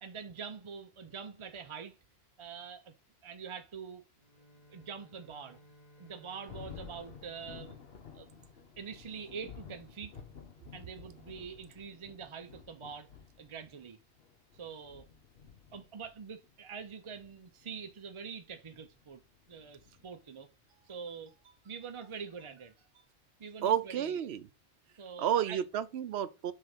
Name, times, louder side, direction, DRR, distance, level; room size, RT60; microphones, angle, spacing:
voice 1, 0.0-2.0 2.4-2.9 3.2-4.0 4.7-5.6 6.0-7.8 8.1-8.3 8.8-10.1 10.7-13.1 13.4-14.0 14.6-15.1 15.7-19.2 19.5-23.0 23.4-24.2 25.0-25.6, right 6 dB, 45° right, 0.4 m, -45 dB
Bowed string instrument, 4.1-8.8, left 1 dB, 35° left, 1.7 m, -61 dB
Thunder, 6.5-20.4, left 6 dB, 60° left, 1.2 m, -53 dB
voice 2, 23.6-24.5 25.2-26.5, right 9 dB, 70° right, 0.9 m, -31 dB
6.6 x 3.3 x 5.0 m
omnidirectional pair, 1.2 m